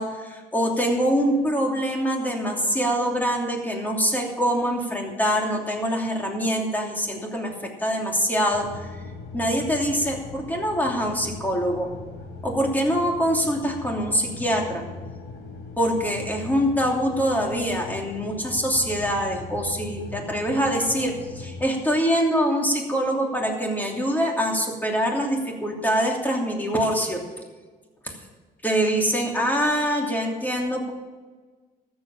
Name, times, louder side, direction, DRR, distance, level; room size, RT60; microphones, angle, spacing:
voice 1, 0.0-7.5 7.8-8.9 9.3-11.9 12.4-14.8 15.8-27.2 28.0-28.1 28.6-30.9, equal, 10° left, 0 dB, 2.9 m, -24 dB
sound 1, 8.5-21.6, left 3 dB, 75° left, 3.5 m, -39 dB
13.5 x 7.9 x 7.1 m, 1.4 s
cardioid pair, 110°, 17 cm